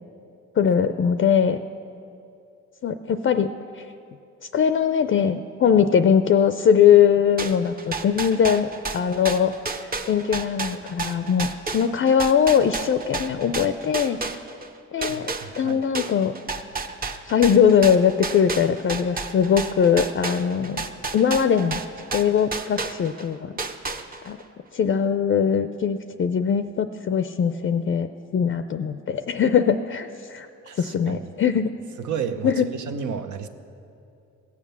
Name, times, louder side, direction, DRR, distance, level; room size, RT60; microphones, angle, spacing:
voice 1, 0.5-1.6 2.8-3.5 3.7-3.9 4.5-8.7 8.9-14.2 14.9-15.3 15.6-16.3 17.3-20.8 21.1-21.8 22.1-23.5 24.3-24.4 24.7-30.5 30.7-31.7 32.4-32.7, left 7 dB, 40° left, 10 dB, 0.5 m, -21 dB
sound 1, 7.4-14.7 15.0-23.3 23.6-24.4, right 4 dB, 30° right, 0.8 m, -31 dB
voice 2, 15.0-15.8 30.6-31.3 32.0-33.5, right 7 dB, 75° right, 8 dB, 0.9 m, -32 dB
17.0 x 7.4 x 6.9 m, 2.6 s
cardioid pair, 90°, 30 cm